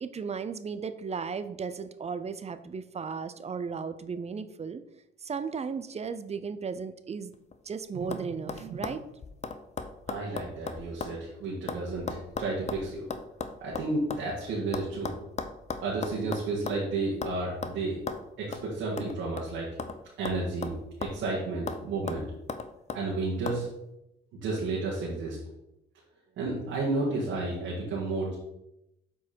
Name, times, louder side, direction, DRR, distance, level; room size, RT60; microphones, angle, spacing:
voice 1, 0.0-4.8 5.2-7.3 7.6-9.0, right 5 dB, 35° right, 12 dB, 0.6 m, -35 dB
sound 1, 7.3-7.7 8.1-8.2 8.5-11.2 11.4-14.3 14.7-16.9 17.2-17.4 17.6-17.8 18.1-18.2 18.5-18.7 19.0-20.0 20.3-21.3 21.7-21.8 22.1-23.0 23.5-23.6, left 4 dB, 35° left, 0.7 m, -36 dB
voice 2, 10.1-13.0 13.6-15.1 15.8-18.0 18.4-19.7 20.2-22.2 22.9-23.7 24.3-25.4 26.4-28.3, right 3 dB, 90° right, -6 dB, 2.1 m, -32 dB
7.4 x 4.6 x 4.4 m, 0.86 s
cardioid pair, 90°, 20 cm